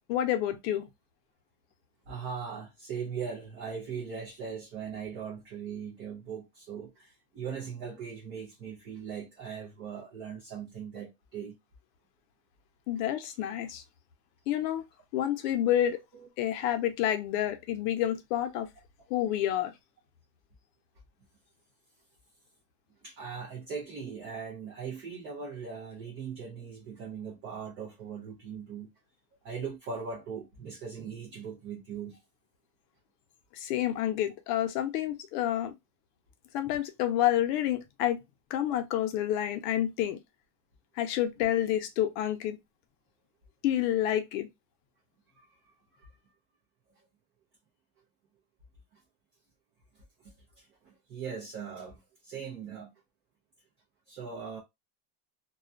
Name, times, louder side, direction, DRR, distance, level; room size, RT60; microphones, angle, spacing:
voice 1, 0.1-0.9 12.9-13.8 14.5-14.8 15.1-16.0 16.4-18.7 19.1-19.7 33.5-35.7 36.5-38.2 38.5-40.2 41.0-42.6 43.6-44.5, left 12 dB, 90° left, 0.7 m, -29 dB
voice 2, 2.1-11.6 16.1-16.3 23.0-28.9 29.4-32.2 45.4-46.1 48.9-49.0 50.2-52.9 54.1-54.6, right 6 dB, 30° right, 0.3 m, -40 dB
2.3 x 2.1 x 2.4 m
cardioid pair, 175°, 47 cm